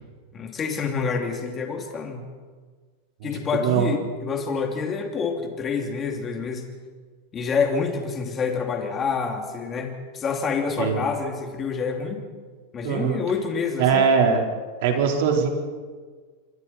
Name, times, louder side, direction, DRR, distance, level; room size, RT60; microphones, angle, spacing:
voice 1, 0.3-2.3 3.2-6.7 7.3-12.2 12.7-14.1, left 5 dB, 20° left, 3 dB, 2.7 m, -27 dB
voice 2, 12.8-13.2 13.8-14.4 14.8-15.5, right 6 dB, 60° right, 1 dB, 4.1 m, -21 dB
27.5 x 23.5 x 4.4 m, 1.5 s
supercardioid pair, 165°, 0 cm